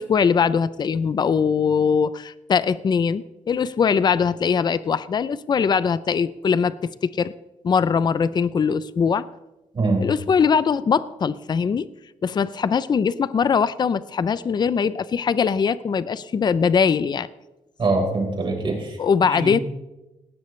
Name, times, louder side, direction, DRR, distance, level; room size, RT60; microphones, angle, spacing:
voice 1, 0.0-7.3 7.6-9.2 10.0-11.9 12.2-17.3 19.0-19.6, left 6 dB, 35° left, 16 dB, 0.4 m, -21 dB
voice 2, 9.7-10.0 17.8-19.0 19.2-19.6, right 3 dB, 40° right, -1 dB, 4.5 m, -23 dB
19.0 x 17.5 x 3.2 m, 1.0 s
wide cardioid pair, 160°, 13 cm